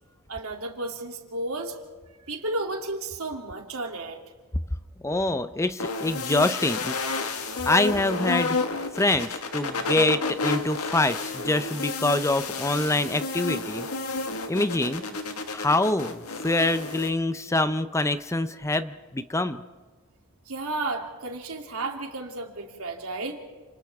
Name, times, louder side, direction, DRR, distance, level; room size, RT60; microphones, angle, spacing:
voice 1, 0.3-1.7 2.3-4.2 20.5-23.4, right 2 dB, 75° right, 1 dB, 3.0 m, -32 dB
voice 2, 5.0-7.0 7.6-8.6 8.9-13.9 14.5-15.0 15.5-19.6, left 2 dB, 15° left, 11 dB, 0.6 m, -25 dB
sound 1, 5.8-17.1, left 3 dB, 85° left, 1.6 m, -31 dB
29.5 x 28.0 x 3.6 m, 1.3 s
head